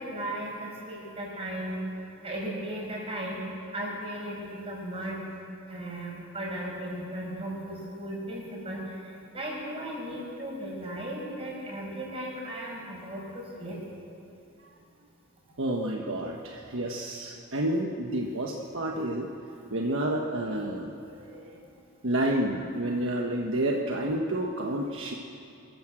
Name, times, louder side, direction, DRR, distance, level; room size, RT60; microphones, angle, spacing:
voice 1, 0.0-1.8 2.2-3.4 3.7-5.2 5.7-13.8, right 1 dB, 25° right, -2 dB, 5.8 m, -36 dB
voice 2, 15.6-19.3 19.7-21.5 22.0-25.1, right 1 dB, 65° right, 0 dB, 1.4 m, -30 dB
26.0 x 14.0 x 7.7 m, 2.7 s
head